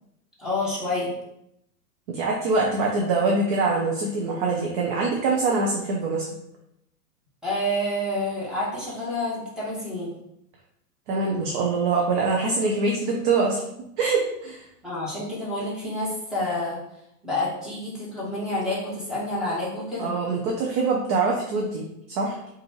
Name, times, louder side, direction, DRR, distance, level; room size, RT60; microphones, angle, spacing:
voice 1, 0.4-1.1 7.4-10.1 14.8-16.8 17.2-20.1, left 1 dB, ahead, -8 dB, 1.5 m, -28 dB
voice 2, 2.1-6.2 11.1-13.6 14.0-14.6 20.0-22.4, right 3 dB, 30° right, -1 dB, 0.6 m, -24 dB
5.0 x 2.6 x 2.9 m, 0.79 s
hypercardioid pair, 110°, 48 cm